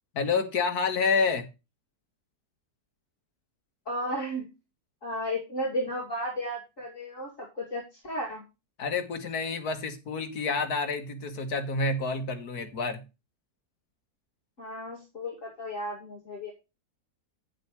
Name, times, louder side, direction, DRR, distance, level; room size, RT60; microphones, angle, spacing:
voice 1, 0.1-1.5 8.8-13.0, left 4 dB, 70° left, 7 dB, 2.0 m, -28 dB
voice 2, 3.9-4.5 5.0-8.4 14.6-16.5, equal, 55° left, -2 dB, 2.8 m, -34 dB
9.6 x 9.2 x 3.1 m, 0.27 s
omnidirectional pair, 1.7 m